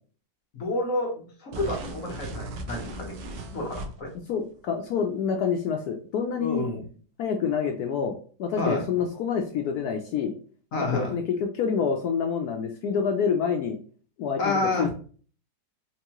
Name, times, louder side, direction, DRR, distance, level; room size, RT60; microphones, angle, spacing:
voice 1, 0.5-1.1 1.4-3.1 3.5-4.1 6.4-6.8 8.6-8.8 10.7-11.1 14.4-14.9, left 2 dB, 50° left, 1 dB, 1.2 m, -29 dB
sound 1, 1.5-4.2, right 2 dB, 70° right, 1.3 m, -37 dB
voice 2, 4.3-6.6 7.2-10.4 10.8-13.8 14.2-14.9, left 6 dB, 75° left, 4 dB, 0.9 m, -27 dB
4.6 x 2.6 x 2.9 m, 0.42 s
omnidirectional pair, 2.0 m